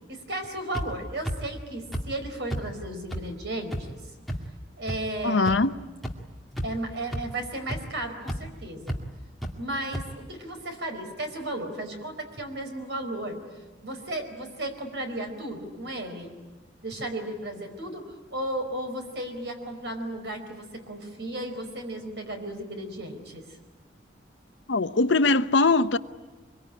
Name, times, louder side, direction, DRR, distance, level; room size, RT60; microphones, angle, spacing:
voice 1, 0.1-4.0 4.8-5.6 6.6-9.0 9.6-13.4 13.8-16.4 16.8-23.4, right 1 dB, 65° right, 4.6 m, -34 dB
sound 1, 0.7-0.9 1.2-1.4 1.9-2.0 2.5-2.6 3.1-3.2 3.7-3.8 4.3-4.4 4.9-5.0 5.5-5.6 6.0-6.1 6.5-6.8 7.1-7.2 7.7-7.8 8.3-8.4 8.9-9.0 9.4-9.5 9.9-10.0, equal, ahead, 2.2 m, -30 dB
voice 2, 5.2-5.7 24.7-26.0, left 3 dB, 80° left, 0.8 m, -21 dB
24.5 x 23.5 x 10.0 m
head